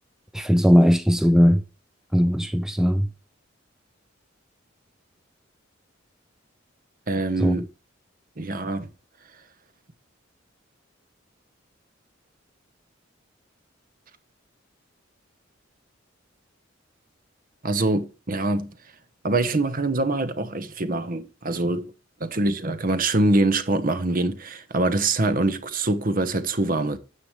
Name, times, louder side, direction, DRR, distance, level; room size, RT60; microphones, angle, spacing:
voice 1, 0.3-1.6 2.1-3.1 7.4-7.7, equal, 5° right, 0.4 m, -18 dB
voice 2, 7.1-7.6 8.4-8.9 17.6-18.7 19.2-21.9 22.2-27.0, right 2 dB, 45° right, 1.1 m, -24 dB
9.7 x 7.4 x 3.2 m
head